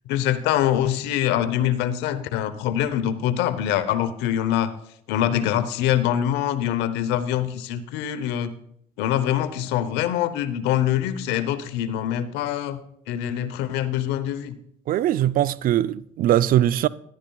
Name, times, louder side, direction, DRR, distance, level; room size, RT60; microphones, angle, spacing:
voice 1, 0.1-4.7 5.1-8.5 9.0-12.8 13.1-14.5, left 11 dB, 80° left, 0.8 m, -24 dB
voice 2, 14.9-16.9, right 12 dB, 55° right, 0.4 m, -21 dB
13.5 x 11.5 x 2.3 m
supercardioid pair, 70°, 18 cm